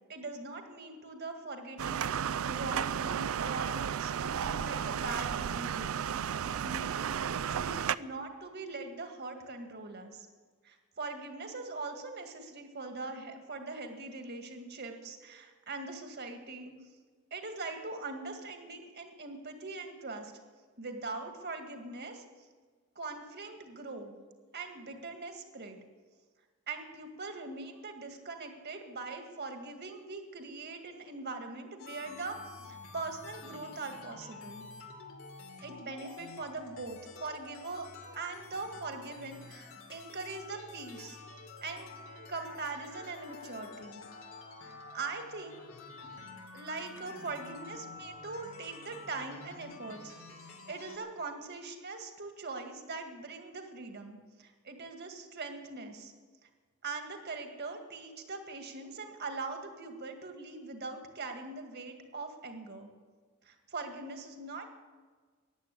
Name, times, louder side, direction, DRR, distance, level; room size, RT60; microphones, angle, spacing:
voice 1, 0.1-10.3 10.6-16.7 17.3-20.3 20.8-22.2 23.0-24.1 24.5-25.8 26.7-34.7 35.6-37.9 38.1-41.2 41.6-41.9 42.3-44.0 44.6-45.6 46.5-50.1 50.4-56.1 56.4-56.5 56.8-62.9 63.4-64.7, right 3 dB, 50° right, 5 dB, 2.0 m, -42 dB
sound 1, 1.8-8.0, right 8 dB, 75° right, 0.4 m, -33 dB
sound 2, 31.8-51.0, left 3 dB, 75° left, 2.7 m, -49 dB
14.5 x 10.5 x 8.4 m, 1.4 s
head